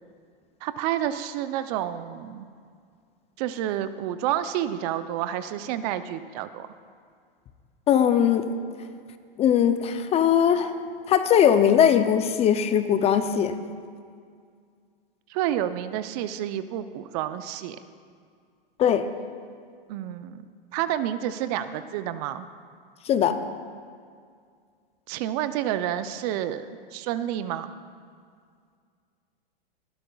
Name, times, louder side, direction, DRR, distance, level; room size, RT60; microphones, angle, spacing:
voice 1, 0.6-2.5 3.4-6.7 15.3-17.8 19.9-20.4 20.7-22.5 25.1-26.7 26.9-27.7, right 11 dB, 40° right, 11 dB, 0.6 m, -29 dB
voice 2, 7.9-8.5 9.4-10.7 11.1-13.5 18.8-19.0 23.0-23.4, left 9 dB, 20° left, 10 dB, 0.5 m, -20 dB
19.5 x 12.0 x 2.3 m, 2.1 s
hypercardioid pair, 115°, 29 cm